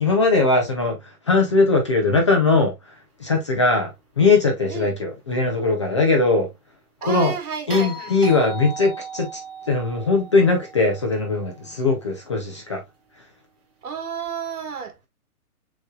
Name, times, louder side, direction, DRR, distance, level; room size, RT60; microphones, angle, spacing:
voice 1, 0.0-2.7 3.2-3.9 4.2-6.5 7.0-7.3 7.7-9.4 9.7-12.8, left 3 dB, 20° left, 0.5 m, -20 dB
voice 2, 7.0-8.1 13.8-15.1, right 7 dB, 70° right, 1.6 m, -31 dB
sound 1, 7.7-12.0 14.2-14.3, right 3 dB, 40° right, 2.5 m, -37 dB
6.6 x 3.1 x 2.3 m
hypercardioid pair, 160°, 45 cm